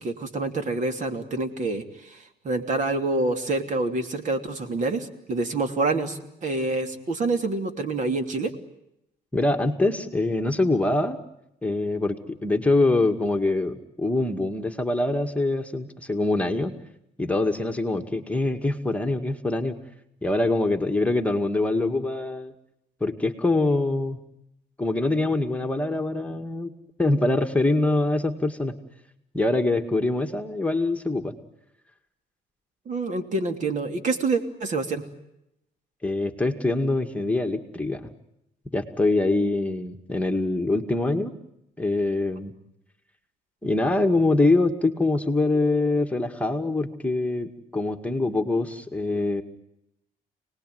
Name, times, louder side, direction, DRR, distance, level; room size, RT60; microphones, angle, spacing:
voice 1, 0.0-8.5 32.8-35.0, right 3 dB, 45° right, 7 dB, 3.0 m, -27 dB
voice 2, 9.3-11.2 11.6-16.7 17.2-19.7 20.2-22.5 23.0-24.2 24.8-26.7 27.0-28.7 29.3-31.3 36.0-38.1 38.7-41.4 41.8-42.5 43.6-49.4, left 2 dB, 10° left, 4 dB, 2.0 m, -24 dB
29.5 x 20.0 x 9.4 m, 0.83 s
cardioid pair, 110°, 17 cm